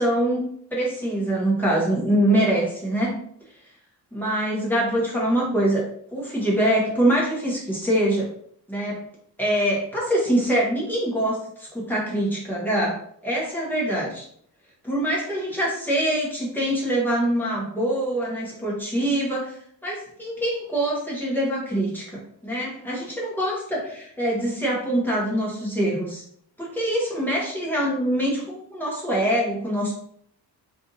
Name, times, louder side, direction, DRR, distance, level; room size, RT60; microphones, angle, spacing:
voice 1, 0.0-3.2 4.1-8.3 8.7-9.0 9.4-14.2 14.8-19.6 19.8-26.2 26.6-29.9, right 1 dB, 5° left, -5 dB, 1.0 m, -24 dB
3.4 x 2.6 x 3.9 m, 0.64 s
cardioid pair, 170°, 40 cm